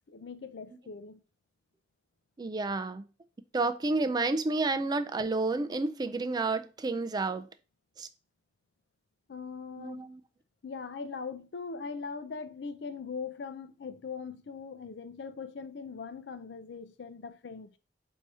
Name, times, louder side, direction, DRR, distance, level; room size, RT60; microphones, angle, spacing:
voice 1, 0.1-1.2 9.3-10.1 10.6-17.8, left 5 dB, 75° left, 0.5 m, -41 dB
voice 2, 2.4-3.1 3.5-7.5 8.0-8.1 9.8-10.2, right 3 dB, 25° right, 0.3 m, -30 dB
4.2 x 2.7 x 4.7 m
head